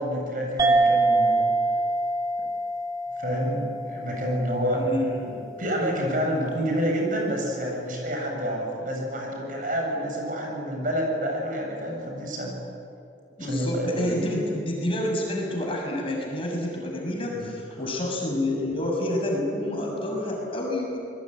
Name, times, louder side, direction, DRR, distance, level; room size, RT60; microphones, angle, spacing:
voice 1, 0.0-1.5 3.2-4.8 5.2-12.6 13.4-14.1 17.3-17.5, equal, 50° right, 0 dB, 7.6 m, -28 dB
sound 1, 0.6-5.5, right 2 dB, 20° right, 2.1 m, -25 dB
voice 2, 4.7-5.1 13.4-21.1, left 1 dB, 30° left, 0 dB, 6.8 m, -28 dB
28.0 x 21.5 x 9.9 m, 2.6 s
head